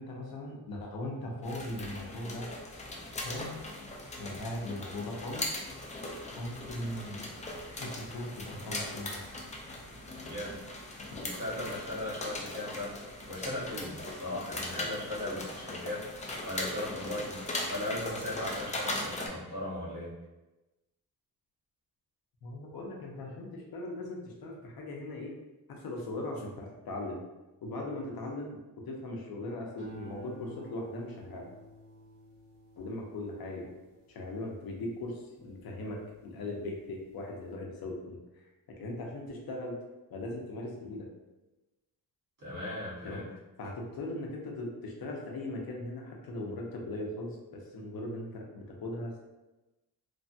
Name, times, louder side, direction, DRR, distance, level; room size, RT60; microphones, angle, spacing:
voice 1, 0.0-2.5 3.2-3.6 4.2-5.6 6.4-7.3 7.7-9.2 14.8-14.9 22.4-25.4 25.7-27.2 27.6-28.6 28.8-31.5 32.8-33.7 34.1-38.5 38.8-39.8 40.1-41.1 43.0-43.2 43.6-49.2, left 1 dB, 70° left, 0 dB, 0.7 m, -39 dB
sound 1, 1.4-19.3, left 2 dB, 20° left, 0.3 m, -39 dB
voice 2, 10.2-10.6 11.2-12.9 13.3-16.2 16.4-17.4 17.7-20.1 42.4-43.3, left 1 dB, 55° right, -8 dB, 1.4 m, -37 dB
sound 2, 29.8-36.3 36.8-37.2, equal, 85° right, 1.2 m, -52 dB
3.2 x 2.2 x 2.6 m, 1.1 s
wide cardioid pair, 145°, 38 cm